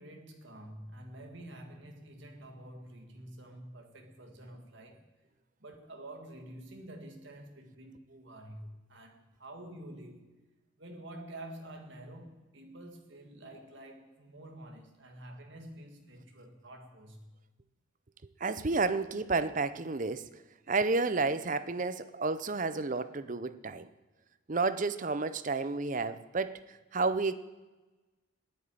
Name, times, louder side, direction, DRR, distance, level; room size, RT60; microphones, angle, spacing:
voice 1, 0.0-5.1 5.6-10.3 10.8-17.4, right 1 dB, 60° right, 2.1 m, -48 dB
voice 2, 18.4-20.3 20.7-23.9 24.5-26.6 26.9-27.4, right 3 dB, 40° right, 0.6 m, -31 dB
13.5 x 10.5 x 9.0 m
head